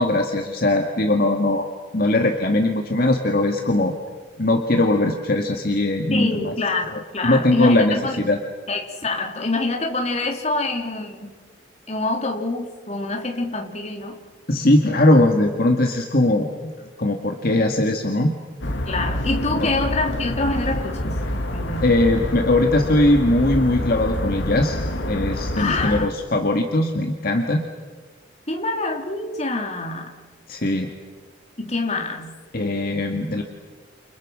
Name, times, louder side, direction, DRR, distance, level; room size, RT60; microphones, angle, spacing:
voice 1, 0.0-1.7 1.9-3.9 4.4-6.5 6.9-8.4 14.5-16.7 17.0-18.3 19.5-19.7 21.8-24.8 25.1-27.7 30.5-30.9 32.5-33.4, left 1 dB, 50° left, 3 dB, 2.0 m, -20 dB
voice 2, 6.1-8.2 8.7-11.3 11.9-14.2 18.9-21.2 21.5-21.8 25.6-26.1 28.5-30.1 31.6-32.3, left 2 dB, 35° left, 1 dB, 3.5 m, -26 dB
sound 1, 18.6-26.1, left 1 dB, 80° left, 2.2 m, -27 dB
29.5 x 29.5 x 6.4 m, 1.4 s
head